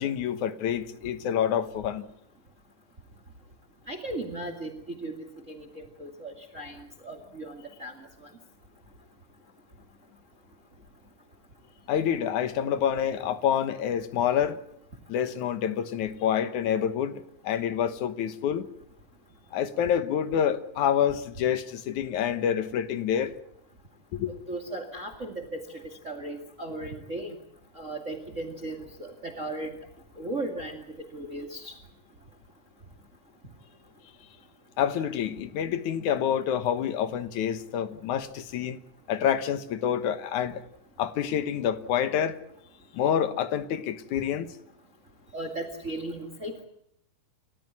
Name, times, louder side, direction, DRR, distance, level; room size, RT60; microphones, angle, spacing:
voice 1, 0.0-2.1 11.9-14.6 15.1-18.7 19.5-23.3 24.1-24.3 34.8-38.8 39.1-40.6 41.0-42.4 42.9-44.5, left 9 dB, 65° left, 2.4 m, -27 dB
voice 2, 3.9-8.0 24.3-27.3 27.7-29.8 30.2-30.8 31.1-31.8 45.3-46.6, right 2 dB, 25° right, 2.0 m, -37 dB
29.5 x 14.0 x 9.8 m
omnidirectional pair, 4.1 m